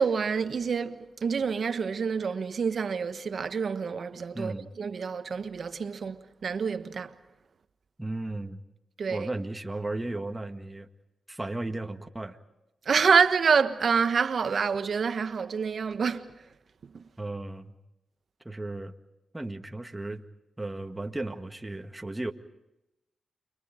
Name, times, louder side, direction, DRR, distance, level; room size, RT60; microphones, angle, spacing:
voice 1, 0.0-7.1 9.0-9.3 12.8-16.3 16.9-17.0, right 6 dB, 65° right, 1.4 m, -27 dB
voice 2, 4.3-4.7 8.0-8.6 9.1-10.9 11.3-12.4 17.2-17.7 18.5-18.9 19.3-20.2 20.6-22.3, right 2 dB, 15° right, 1.8 m, -35 dB
29.5 x 24.0 x 5.1 m
supercardioid pair, 50°, 0 cm